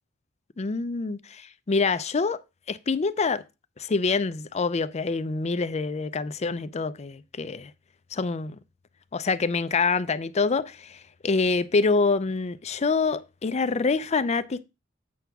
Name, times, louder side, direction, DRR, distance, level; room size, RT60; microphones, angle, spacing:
voice 1, 0.6-2.4 2.7-3.4 3.8-7.7 8.1-8.6 9.1-14.6, left 4 dB, 35° left, 0.5 m, -26 dB
8.5 x 3.4 x 5.9 m
head